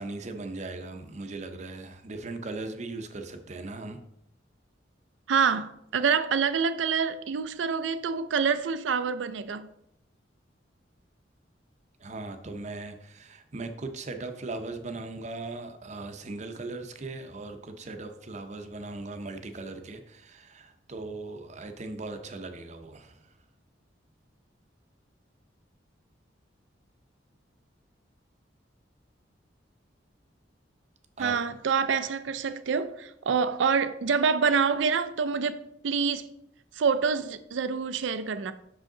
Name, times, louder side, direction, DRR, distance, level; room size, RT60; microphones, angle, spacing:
voice 1, 0.0-4.0 12.0-23.3 31.2-31.3, right 2 dB, 40° right, 0.6 m, -38 dB
voice 2, 5.3-9.7 31.2-36.3 36.8-38.5, right 6 dB, 90° right, 0.4 m, -26 dB
6.3 x 5.0 x 3.8 m
head